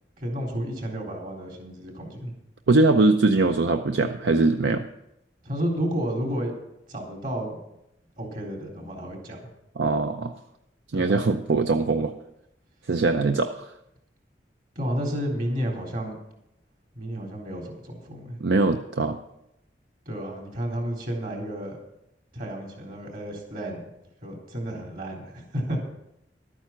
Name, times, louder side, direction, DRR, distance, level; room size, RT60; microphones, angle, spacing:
voice 1, 0.2-2.3 5.4-6.5 6.9-7.5 8.2-9.5 10.9-11.2 14.8-16.2 17.0-18.4 20.1-21.8 22.3-23.9 24.2-25.8, equal, 50° right, 0 dB, 3.9 m, -31 dB
voice 2, 2.7-4.9 9.8-10.3 10.9-12.1 12.9-13.7 18.4-19.2, right 3 dB, 75° right, 7 dB, 0.6 m, -22 dB
12.5 x 9.3 x 5.8 m, 0.83 s
head